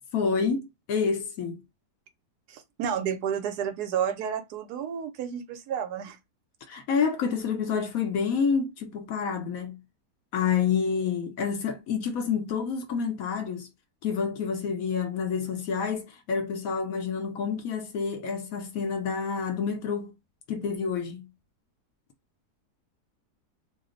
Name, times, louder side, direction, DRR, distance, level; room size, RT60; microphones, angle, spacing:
voice 1, 0.1-1.6 6.7-9.8 10.3-13.7 14.0-20.1 20.5-21.3, left 6 dB, 70° left, 0.9 m, -28 dB
voice 2, 2.5-6.2, right 8 dB, 75° right, 1.1 m, -31 dB
2.8 x 2.0 x 3.7 m
omnidirectional pair, 1.8 m